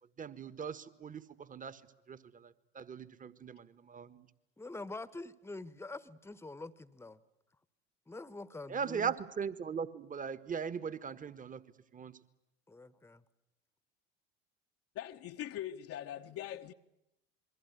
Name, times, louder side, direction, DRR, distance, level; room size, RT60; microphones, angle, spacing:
voice 1, 0.2-1.8 2.1-4.3 8.7-11.6 11.9-12.2, right 6 dB, 25° right, 1.5 m, -39 dB
voice 2, 4.6-7.2 8.1-9.1 12.7-13.2, left 2 dB, 5° left, 1.2 m, -45 dB
voice 3, 14.9-16.7, left 12 dB, 45° left, 1.1 m, -42 dB
27.5 x 22.5 x 8.3 m
figure-of-eight pair, 75°, 33 cm